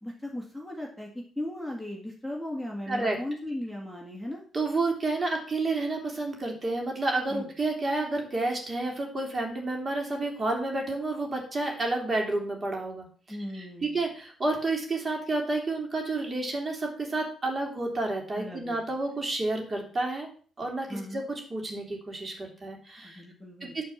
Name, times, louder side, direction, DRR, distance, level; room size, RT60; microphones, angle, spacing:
voice 1, 0.0-4.4 7.3-7.5 13.3-14.1 18.3-18.8 20.9-21.2 23.0-23.8, left 1 dB, 5° right, -2 dB, 2.0 m, -37 dB
voice 2, 2.9-3.2 4.5-20.3 20.6-23.2 23.6-23.8, right 2 dB, 30° right, 1 dB, 3.3 m, -30 dB
9.4 x 4.5 x 7.3 m, 0.43 s
cardioid pair, 90°, 0 cm